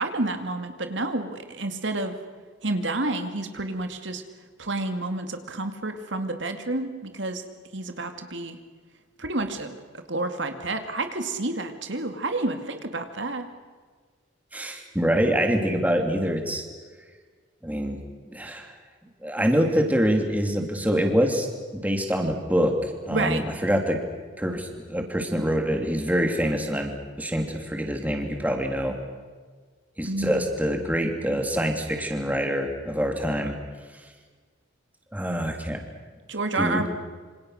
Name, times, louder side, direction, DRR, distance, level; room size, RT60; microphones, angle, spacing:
voice 1, 0.0-2.1 2.6-4.2 4.6-7.4 7.7-8.6 9.2-13.5 23.1-23.4 30.0-30.5 36.3-36.9, right 2 dB, 70° right, 7 dB, 2.3 m, -29 dB
voice 2, 14.5-16.6 17.6-18.0 18.3-18.7 19.2-21.5 21.7-24.0 24.4-29.0 30.0-33.5 35.1-35.8 36.6-36.9, equal, 10° right, 3 dB, 2.9 m, -25 dB
27.5 x 26.0 x 6.6 m, 1.5 s
head